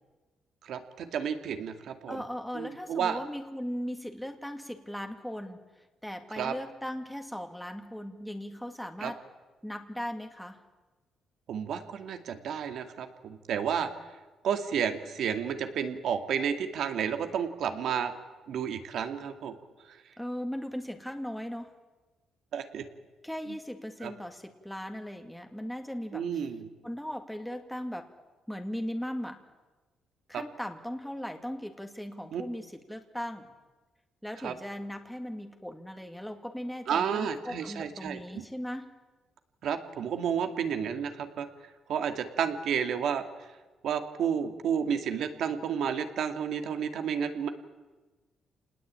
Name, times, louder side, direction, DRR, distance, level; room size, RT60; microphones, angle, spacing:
voice 1, 0.6-2.2 2.5-3.2 6.4-6.5 9.0-9.1 11.5-13.9 14.4-18.1 18.5-19.5 22.5-22.9 24.0-24.1 26.1-26.7 30.3-30.4 32.3-32.4 34.4-34.5 36.9-38.4 39.6-41.5 41.9-43.2 43.8-47.5, right 7 dB, 70° right, 7 dB, 2.3 m, -31 dB
voice 2, 2.1-5.6 6.0-9.2 9.6-10.6 20.2-21.7 23.2-26.5 26.8-28.1 28.5-29.4 30.3-33.5 34.2-38.9, equal, 5° left, 5 dB, 2.0 m, -38 dB
27.5 x 19.5 x 8.9 m, 1.2 s
cardioid pair, 90°, 0 cm